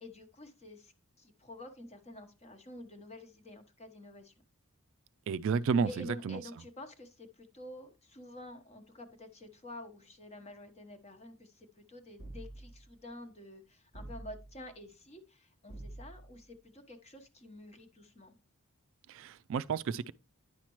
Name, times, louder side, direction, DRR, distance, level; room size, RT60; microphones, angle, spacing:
voice 1, 0.0-4.3 5.8-18.3, left 1 dB, 30° left, 1.1 m, -49 dB
voice 2, 5.3-6.4 19.1-20.1, right 6 dB, 60° right, 0.3 m, -31 dB
sound 1, 12.2-12.9 13.9-14.7 15.7-16.4, right 1 dB, 90° left, 2.2 m, -47 dB
9.8 x 5.8 x 3.0 m
head